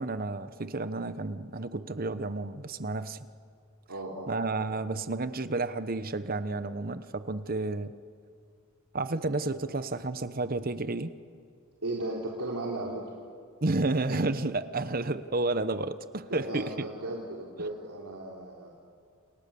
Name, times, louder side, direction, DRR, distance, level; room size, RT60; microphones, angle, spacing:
voice 1, 0.0-3.2 4.3-7.9 8.9-11.1 13.6-16.7, right 2 dB, 40° right, 12 dB, 1.0 m, -31 dB
voice 2, 3.9-4.5 11.8-13.1 16.3-18.8, right 2 dB, 90° right, -3 dB, 3.4 m, -36 dB
29.0 x 29.0 x 7.0 m, 2.3 s
head